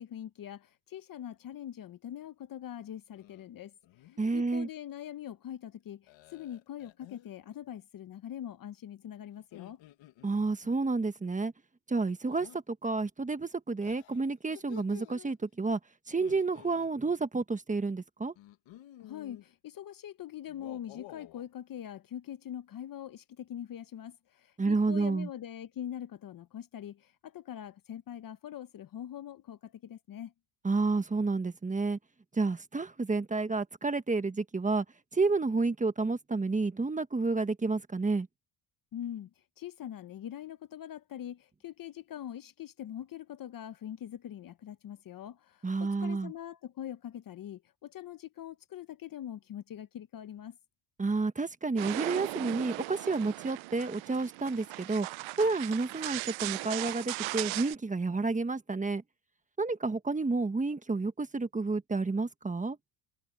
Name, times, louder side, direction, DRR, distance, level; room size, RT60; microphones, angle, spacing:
voice 1, 0.0-3.7 4.0-9.8 19.0-30.3 38.9-39.3 39.6-50.6, left 10 dB, 45° left, 0.9 m, -43 dB
sound 1, 3.1-3.5 3.8-4.3 6.1-7.3 9.4-10.8 12.2-12.6 13.8-15.3 16.1-16.9 18.4-19.5 20.4-21.5, left 15 dB, 65° left, 1.8 m, -52 dB
voice 2, 4.2-4.7 10.2-11.5 11.9-15.8 16.1-18.3 24.6-25.3 30.6-32.0 32.3-34.8 35.1-38.3 45.6-46.3 51.0-55.1 55.4-59.0 59.6-62.8, right 3 dB, 15° right, 1.3 m, -30 dB
sound 2, 51.8-57.8, right 21 dB, 70° right, 0.6 m, -38 dB
cardioid pair, 110°, 49 cm